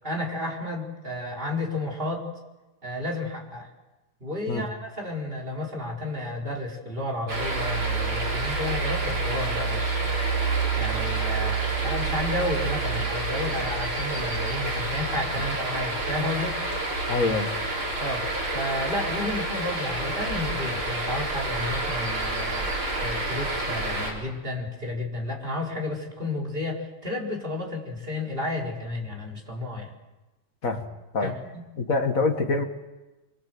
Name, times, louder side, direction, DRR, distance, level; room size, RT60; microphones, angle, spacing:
voice 1, 0.0-2.2 2.8-3.7 4.2-10.2 10.8-16.6 18.0-29.9 31.2-31.6, left 1 dB, 25° right, 1 dB, 4.6 m, -32 dB
sound 1, 7.3-24.1, right 2 dB, 80° right, 6.2 m, -28 dB
voice 2, 17.1-17.5 30.6-30.9 31.1-31.3 31.8-32.6, left 3 dB, 40° left, 5 dB, 2.1 m, -25 dB
24.5 x 24.0 x 7.9 m, 1.1 s
omnidirectional pair, 2.3 m